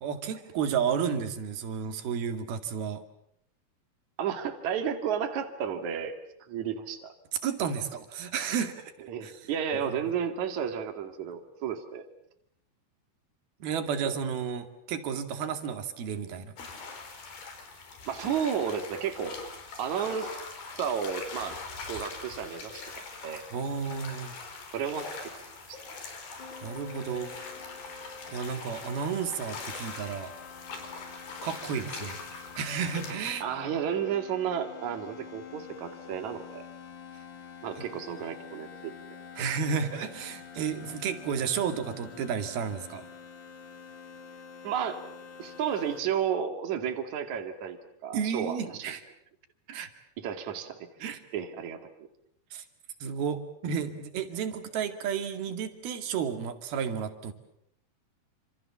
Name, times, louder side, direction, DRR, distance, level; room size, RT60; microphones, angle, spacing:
voice 1, 0.0-3.0 7.3-9.3 9.7-10.0 13.6-16.6 23.5-24.3 26.6-27.3 28.3-30.3 31.4-33.4 37.8-37.9 39.4-43.1 48.1-49.1 49.7-49.9 51.0-51.2 52.5-52.6 53.0-57.3, right 7 dB, 75° right, 8 dB, 4.1 m, -32 dB
voice 2, 4.2-6.2 6.5-7.1 9.1-12.0 18.1-19.4 19.8-20.4 20.8-21.6 21.9-23.5 24.7-25.3 25.7-25.8 33.4-36.7 37.6-39.2 44.6-45.0 45.4-48.9 50.2-50.9 51.3-51.8, right 8 dB, 55° right, 6 dB, 3.5 m, -32 dB
sound 1, 16.6-33.1, left 4 dB, 70° left, 5.9 m, -42 dB
sound 2, 26.4-46.0, left 6 dB, 40° left, 2.0 m, -47 dB
28.0 x 27.0 x 7.3 m, 0.72 s
omnidirectional pair, 4.4 m